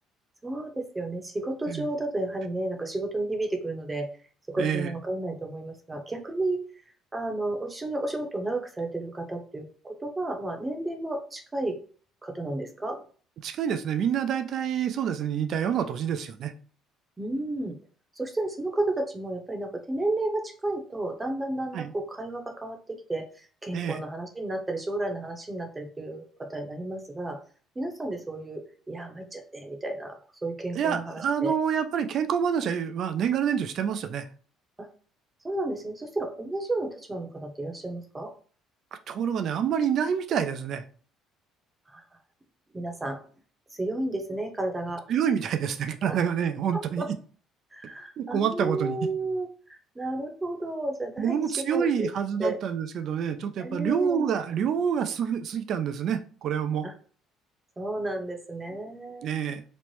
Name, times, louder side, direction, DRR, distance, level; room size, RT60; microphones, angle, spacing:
voice 1, 0.4-4.1 4.5-6.6 7.1-11.8 12.2-13.0 17.2-17.8 18.2-23.3 23.6-27.4 27.8-31.5 34.8-34.9 35.4-38.3 41.9-42.0 42.7-43.2 43.7-45.0 46.1-46.2 46.7-47.1 47.7-52.1 52.4-52.6 53.6-54.2 56.8-56.9 57.8-59.3, right 2 dB, 20° right, 0.7 m, -32 dB
voice 2, 4.6-4.9 13.4-16.5 21.7-21.9 23.7-24.0 30.8-34.3 38.9-40.8 45.1-47.1 48.2-49.0 51.2-56.9 59.2-59.6, right 8 dB, 60° right, 0.4 m, -27 dB
3.1 x 2.0 x 3.1 m
supercardioid pair, 65°, 0 cm